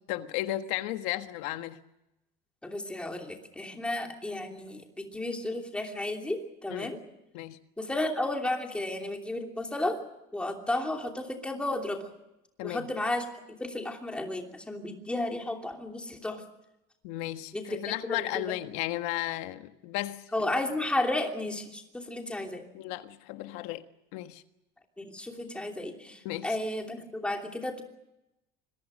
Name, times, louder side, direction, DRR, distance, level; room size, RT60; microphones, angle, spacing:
voice 1, 0.1-1.8 6.7-6.9 7.3-7.6 12.6-12.9 17.0-20.2 22.7-23.8 24.1-24.4 26.2-26.6, left 15 dB, 85° left, 8 dB, 1.5 m, -34 dB
voice 2, 2.6-7.0 7.8-10.0 10.3-12.0 12.6-13.2 13.6-16.4 17.5-18.2 18.4-18.5 20.3-22.6 25.0-27.8, left 1 dB, 5° left, 2 dB, 2.9 m, -33 dB
26.5 x 22.5 x 6.4 m, 0.90 s
cardioid pair, 175°, 20 cm